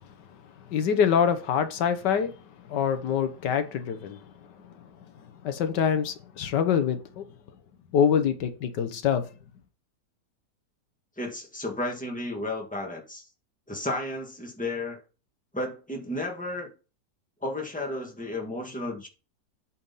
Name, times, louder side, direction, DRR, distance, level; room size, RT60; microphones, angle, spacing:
voice 1, 0.7-2.3 2.7-4.2 5.4-7.2 7.9-9.2, left 7 dB, 85° left, 1.6 m, -25 dB
voice 2, 11.2-13.2 13.7-15.0 15.5-16.7 17.4-19.1, left 1 dB, 5° left, 1.8 m, -33 dB
8.5 x 4.3 x 5.4 m
omnidirectional pair, 1.8 m